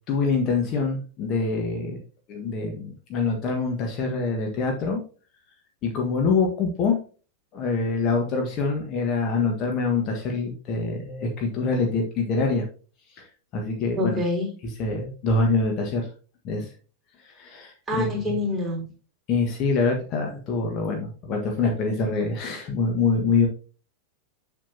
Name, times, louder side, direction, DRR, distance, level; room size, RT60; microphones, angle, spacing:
voice 1, 0.1-2.0 2.3-5.0 5.8-7.0 7.5-12.6 13.1-13.3 13.5-14.2 14.8-16.1 16.4-16.7 17.2-18.4 19.3-23.5, left 4 dB, 35° left, 1.5 m, -25 dB
voice 2, 14.0-14.5 17.9-18.8, left 1 dB, 10° right, 3.4 m, -26 dB
7.6 x 6.8 x 2.8 m
figure-of-eight pair, 90°, 0 cm